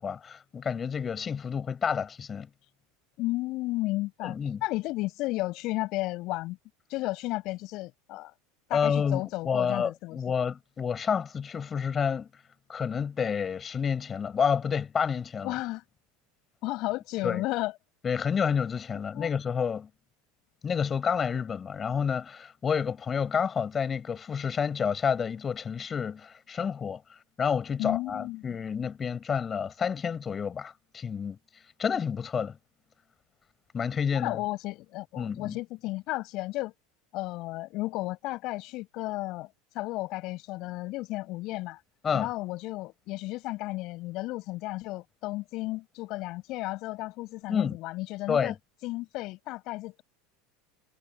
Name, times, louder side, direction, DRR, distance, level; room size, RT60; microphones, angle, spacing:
voice 1, 0.0-2.5 4.2-4.6 8.7-12.3 12.7-15.6 17.2-17.4 18.0-19.9 20.6-27.0 27.4-31.4 31.8-32.6 33.7-34.4 35.2-35.6 42.0-42.3 47.5-47.8 48.3-48.6, left 6 dB, 30° left, 6.9 m, -29 dB
voice 2, 3.2-6.6 6.9-8.3 8.7-10.2 15.4-15.8 16.6-17.7 19.1-19.3 27.8-28.4 34.1-36.7 37.1-39.5 39.7-41.8 42.1-48.5 48.8-50.0, left 19 dB, 55° left, 5.5 m, -33 dB
hypercardioid pair, 95°, 0 cm